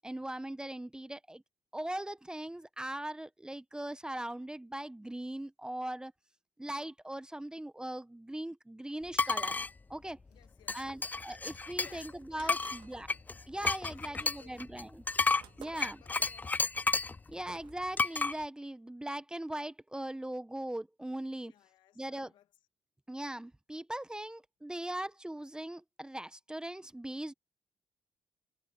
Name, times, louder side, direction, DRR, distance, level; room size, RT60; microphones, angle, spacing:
voice 1, 0.0-1.4 1.7-6.1 6.6-9.6 9.9-10.2 10.7-13.1 13.5-15.0 15.6-16.0 17.3-21.5 22.0-22.3 23.1-27.3, right 1 dB, 10° right, 1.1 m, -40 dB
sound 1, 9.1-9.7 10.7-12.1 12.5-17.2 18.0-18.3, left 3 dB, 20° left, 0.4 m, -31 dB
voice 2, 10.3-11.1 11.8-13.2 13.6-14.8 15.6-16.8 21.5-22.5, left 13 dB, 80° left, 2.1 m, -61 dB
sound 2, 12.2-17.9, right 11 dB, 75° right, 1.8 m, -57 dB
supercardioid pair, 55°, 8 cm